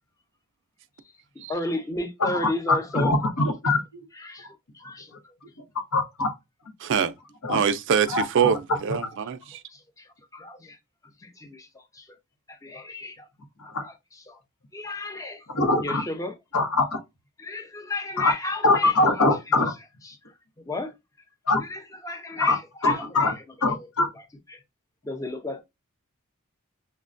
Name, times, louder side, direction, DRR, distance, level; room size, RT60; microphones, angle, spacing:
voice 1, 1.5-3.2 4.1-4.6 4.8-5.0 9.7-10.8 11.2-12.1 12.5-13.3 13.8-14.4 14.7-15.5 15.8-16.3 17.4-19.5 20.0-20.2 20.7-20.9 21.6-23.3 23.7-23.9 24.1-24.2 24.5-24.6 25.0-25.6, left 2 dB, 15° left, 0.5 m, -34 dB
voice 2, 2.7-3.8 5.9-6.3 7.4-7.6 8.1-8.2 13.7-13.8 15.5-16.0 16.5-17.0 18.2-18.3 18.6-19.7 21.5-21.6 22.4-22.6 22.8-23.3 23.6-24.1, left 2 dB, 90° left, 1.0 m, -22 dB
voice 3, 6.8-7.1 7.5-9.6, right 7 dB, 55° right, 0.4 m, -24 dB
6.2 x 2.1 x 2.5 m
head